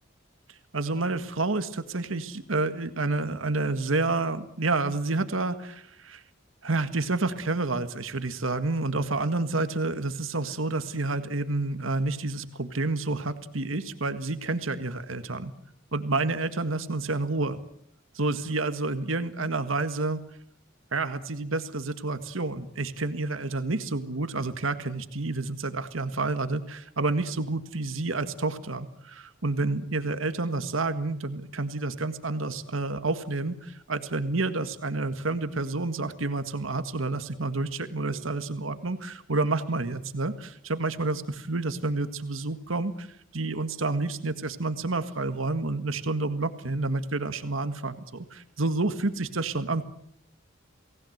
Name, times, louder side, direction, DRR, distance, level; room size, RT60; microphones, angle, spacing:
voice 1, 0.5-6.2 6.6-15.5 15.9-17.6 18.1-20.2 20.9-49.8, right 3 dB, 85° right, 10 dB, 1.8 m, -29 dB
29.5 x 19.0 x 8.0 m, 0.70 s
head